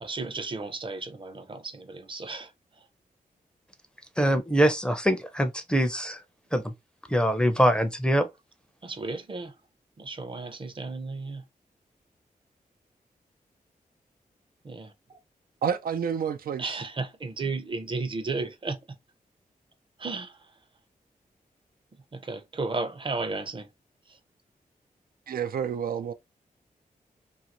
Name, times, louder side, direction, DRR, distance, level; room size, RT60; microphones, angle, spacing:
voice 1, 0.0-2.5 8.8-9.5 10.0-11.4 14.6-15.2 16.6-18.8 20.0-20.5 22.1-23.7 24.1-24.2, right 3 dB, 35° right, 0.6 m, -34 dB
voice 2, 4.2-6.2 6.5-6.7 7.1-8.3, equal, 5° left, 0.5 m, -23 dB
voice 3, 15.6-16.8 25.3-26.1, right 7 dB, 80° right, 0.4 m, -29 dB
2.8 x 2.6 x 2.9 m
wide cardioid pair, 110°, 15 cm